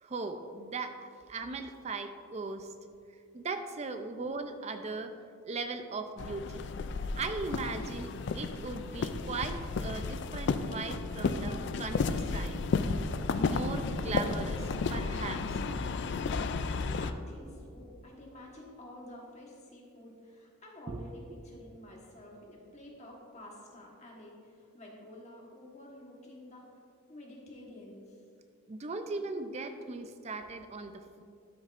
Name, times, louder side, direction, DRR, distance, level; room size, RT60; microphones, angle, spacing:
voice 1, 0.0-2.7 3.3-5.1 5.4-6.6 7.2-12.6 13.5-15.6 20.9-21.0 28.7-30.9, right 3 dB, 30° right, 8 dB, 0.4 m, -38 dB
sound 1, 6.2-17.1, left 4 dB, 55° left, 0.3 m, -33 dB
voice 2, 16.7-26.7 27.1-28.2, left 1 dB, 35° left, -2 dB, 1.3 m, -50 dB
12.5 x 6.3 x 2.5 m, 2.4 s
head